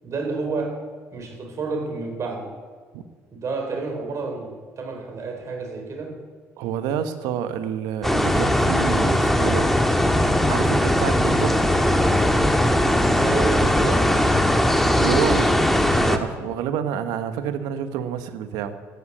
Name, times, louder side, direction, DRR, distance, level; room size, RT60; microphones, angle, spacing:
voice 1, 0.0-0.8 1.1-2.5 3.3-6.2 13.2-14.1, right 4 dB, 50° right, 3 dB, 4.2 m, -30 dB
voice 2, 6.6-9.7 10.5-11.6 15.0-18.8, right 8 dB, 75° right, 10 dB, 1.2 m, -28 dB
sound 1, 8.0-16.2, left 1 dB, 5° left, 1.7 m, -19 dB
14.0 x 10.0 x 8.6 m, 1.5 s
hypercardioid pair, 65°, 7 cm